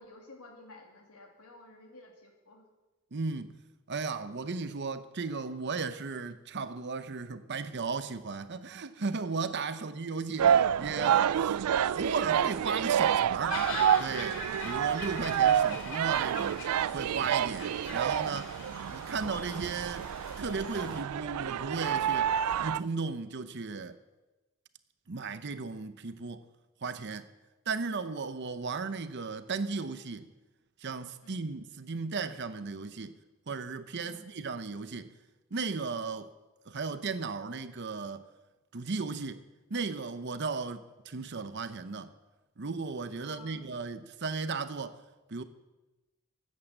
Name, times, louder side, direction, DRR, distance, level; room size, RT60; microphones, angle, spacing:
voice 1, 0.0-2.7 9.6-10.0 17.5-17.9 31.2-31.5 34.0-34.3 43.2-43.7, left 2 dB, 85° left, 2.6 m, -53 dB
voice 2, 3.1-3.6 3.9-11.6 11.9-13.6 14.0-16.6 16.9-18.6 18.9-20.1 20.4-22.3 22.6-23.9 25.1-26.4 26.8-27.3 27.7-30.3 30.8-33.1 33.5-35.1 35.5-36.3 36.7-38.2 38.7-39.4 39.7-42.1 42.6-45.0 45.3-45.4, right 4 dB, 50° right, 0.7 m, -35 dB
sound 1, 10.4-22.8, right 9 dB, 85° right, 0.3 m, -28 dB
sound 2, 13.5-21.0, left 3 dB, 60° left, 2.6 m, -42 dB
14.5 x 8.3 x 7.2 m
head